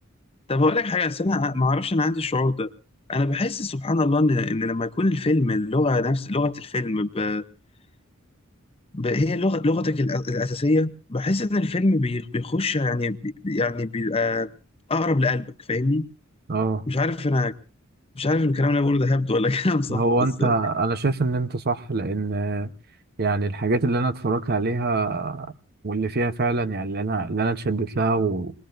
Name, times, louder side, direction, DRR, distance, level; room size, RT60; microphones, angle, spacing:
voice 1, 0.5-2.7 3.1-7.4 8.9-14.5 14.9-16.0 16.9-17.5 18.2-20.0 20.4-20.5, left 2 dB, 30° left, 0.7 m, -23 dB
voice 2, 16.5-16.8 19.9-22.7 23.2-25.5 25.8-28.5, right 3 dB, 50° right, 0.9 m, -24 dB
26.0 x 20.5 x 2.6 m
head